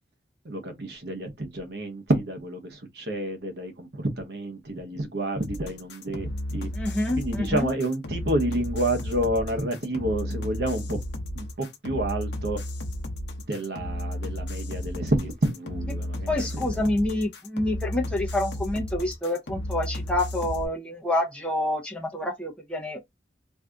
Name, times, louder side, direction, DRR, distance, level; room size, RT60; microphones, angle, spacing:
voice 1, 0.4-6.7 7.2-11.0 11.4-12.6 13.5-16.8, right 1 dB, 65° right, 0.8 m, -29 dB
sound 1, 5.4-20.7, left 1 dB, 75° left, 0.7 m, -33 dB
voice 2, 6.7-7.7 16.3-23.0, left 1 dB, 5° left, 0.6 m, -27 dB
2.6 x 2.4 x 3.4 m
head